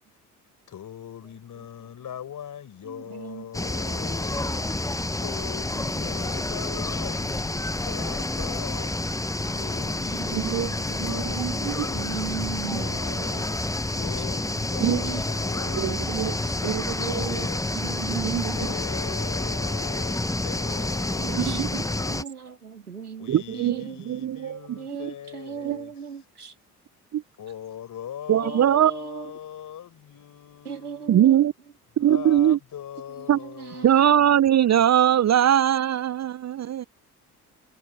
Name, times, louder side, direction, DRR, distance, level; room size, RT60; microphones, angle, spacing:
voice 1, 0.7-4.9 5.2-8.9 9.4-13.6 13.9-17.6 18.5-22.3 23.2-26.2 27.4-31.1 32.0-34.4, left 9 dB, 45° left, 5.3 m, -41 dB
voice 2, 2.9-3.5 10.1-10.8 11.9-13.4 14.8-15.2 16.5-16.9 21.2-21.6 22.1-24.0 24.8-26.5 28.4-29.3 30.6-31.5 33.4-34.0, right 7 dB, 85° right, 2.6 m, -37 dB
sound 1, 3.5-22.2, left 2 dB, 5° left, 1.3 m, -29 dB
voice 3, 10.3-10.7 11.0-11.8 14.8-15.0 15.7-16.4 16.6-17.4 17.9-18.6 21.3-21.8 23.3-24.6 25.6-25.8 27.1-27.2 28.3-28.9 31.1-31.5 32.0-32.6 33.3-33.4 33.8-36.9, right 10 dB, 35° right, 1.0 m, -22 dB
figure-of-eight pair, 50°, 44 cm